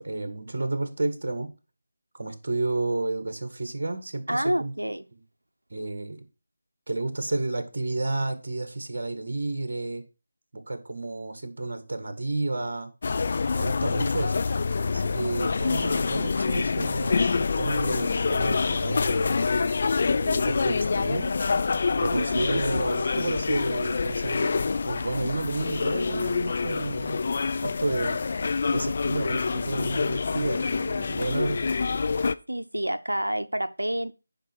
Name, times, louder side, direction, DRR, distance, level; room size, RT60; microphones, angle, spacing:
voice 1, 0.0-1.5 2.1-4.7 5.7-6.2 6.9-10.0 10.5-12.9 13.5-14.5 14.8-19.4 20.1-21.3 22.0-27.2 27.6-28.2 28.7-31.7, right 2 dB, 55° right, 1.8 m, -31 dB
voice 2, 4.3-5.0 15.4-15.5 22.1-22.6 32.5-34.1, right 1 dB, 90° right, 0.7 m, -28 dB
sound 1, 13.0-32.3, left 4 dB, 45° left, 0.5 m, -26 dB
10.5 x 5.1 x 4.6 m
figure-of-eight pair, 160°, 0 cm